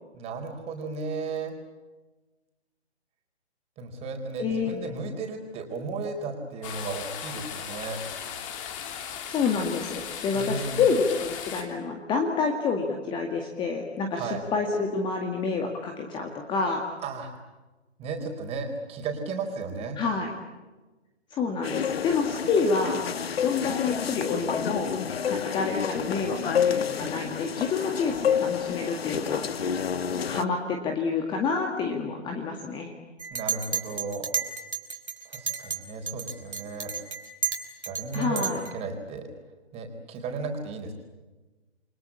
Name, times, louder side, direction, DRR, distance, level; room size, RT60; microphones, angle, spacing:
voice 1, 0.1-1.6 3.8-8.0 10.3-10.9 14.1-14.4 17.0-17.3 18.0-20.0 33.3-34.4 35.2-36.9 37.8-39.3 39.7-40.9, right 4 dB, 20° right, 4 dB, 4.4 m, -34 dB
voice 2, 4.4-4.7 9.3-16.8 20.0-20.3 21.3-23.1 23.4-25.0 25.3-29.7 30.2-32.9 38.1-38.6, left 5 dB, 15° left, 3 dB, 2.0 m, -28 dB
sound 1, 6.6-11.6, left 8 dB, 30° left, 3.1 m, -37 dB
sound 2, 21.6-30.4, left 7 dB, 60° left, 1.2 m, -29 dB
Chink clink, 33.2-35.8 36.1-38.7, right 5 dB, 75° right, 4.9 m, -32 dB
29.0 x 23.5 x 8.5 m, 1.2 s
figure-of-eight pair, 135°, 33 cm